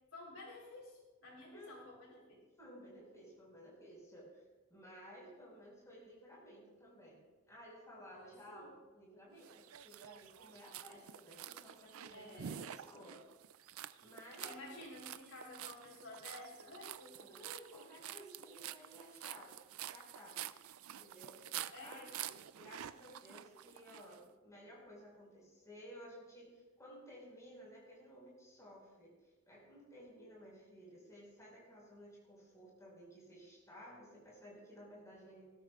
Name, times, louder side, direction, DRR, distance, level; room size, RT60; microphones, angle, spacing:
voice 1, 0.1-2.4 8.1-8.7 12.1-12.6 14.4-17.4 21.7-22.3, left 2 dB, 85° left, -2 dB, 4.0 m, -52 dB
voice 2, 1.5-2.1 2.6-4.4 4.7-13.2 14.0-14.9 17.3-20.4 21.0-21.4 21.8-22.1 22.5-35.5, equal, 15° left, -4 dB, 5.1 m, -56 dB
sound 1, 9.4-24.2, right 11 dB, 85° right, 0.4 m, -49 dB
20.0 x 13.0 x 2.4 m, 1.2 s
head